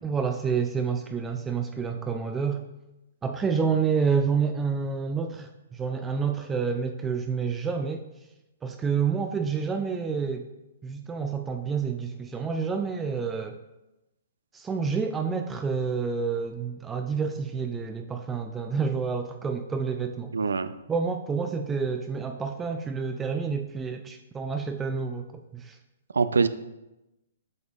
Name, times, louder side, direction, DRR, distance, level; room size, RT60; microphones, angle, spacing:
voice 1, 0.0-2.7 3.2-8.0 8.6-10.5 10.8-13.6 14.5-20.3 20.9-25.8, right 5 dB, 15° right, 6 dB, 0.3 m, -28 dB
voice 2, 20.3-20.7 26.1-26.5, right 4 dB, 90° right, 13 dB, 0.4 m, -23 dB
7.8 x 5.3 x 2.4 m, 0.97 s
hypercardioid pair, 135°, 0 cm